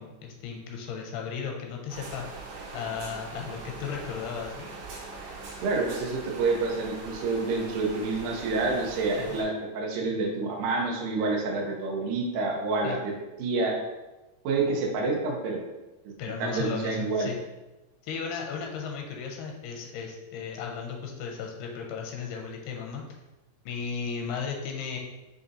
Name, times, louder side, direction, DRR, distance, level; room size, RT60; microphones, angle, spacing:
voice 1, 0.0-2.2 2.7-4.7 9.2-9.4 12.8-13.0 16.2-17.4 18.0-23.0 23.7-25.0, left 6 dB, 85° left, 1 dB, 2.6 m, -35 dB
sound 1, 1.9-9.4, right 3 dB, 65° right, 2.3 m, -41 dB
voice 2, 5.6-13.1 13.4-13.8 14.4-15.6 16.4-17.3, right 3 dB, 85° right, -1 dB, 1.8 m, -28 dB
6.6 x 2.6 x 2.6 m, 1.1 s
omnidirectional pair, 4.6 m